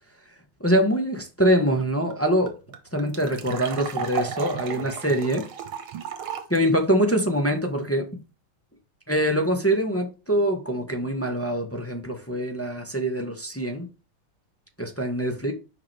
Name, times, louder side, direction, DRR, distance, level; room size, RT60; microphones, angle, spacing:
voice 1, 0.6-2.5 2.9-5.4 6.5-8.1 9.1-13.9 14.8-15.5, equal, 10° left, 0.9 m, -24 dB
sound 1, 1.8-1.9 2.1-2.2 2.5-6.6, right 7 dB, 85° right, 2.0 m, -34 dB
6.6 x 5.3 x 3.4 m
omnidirectional pair, 2.2 m